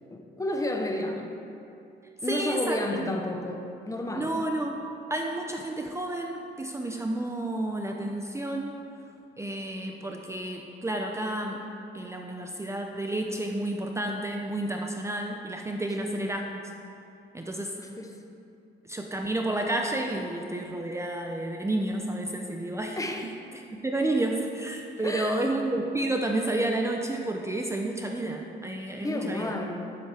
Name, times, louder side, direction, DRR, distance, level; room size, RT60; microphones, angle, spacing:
voice 1, 0.1-1.3 2.2-4.4 16.0-16.4 17.5-18.2 23.0-23.3 25.0-25.5 29.0-30.0, left 1 dB, 15° left, 3 dB, 0.9 m, -32 dB
voice 2, 2.3-3.0 4.1-4.8 5.1-8.7 9.4-11.6 11.9-16.4 17.3-17.8 18.9-23.0 23.5-29.5, right 1 dB, 15° right, 2 dB, 0.6 m, -30 dB
11.0 x 7.4 x 3.4 m, 2.6 s
cardioid pair, 90°, 20 cm